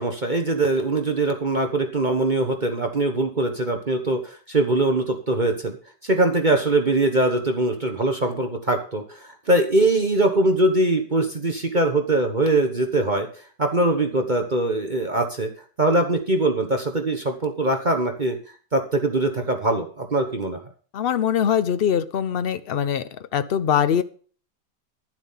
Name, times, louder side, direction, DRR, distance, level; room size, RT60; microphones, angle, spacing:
voice 1, 0.0-5.8 6.0-13.3 13.6-15.5 15.8-18.4 18.7-20.6, right 2 dB, 30° right, 4 dB, 1.1 m, -22 dB
voice 2, 20.9-23.0 23.3-24.0, left 8 dB, 70° left, 13 dB, 0.5 m, -22 dB
11.0 x 7.6 x 5.6 m, 0.42 s
omnidirectional pair, 1.8 m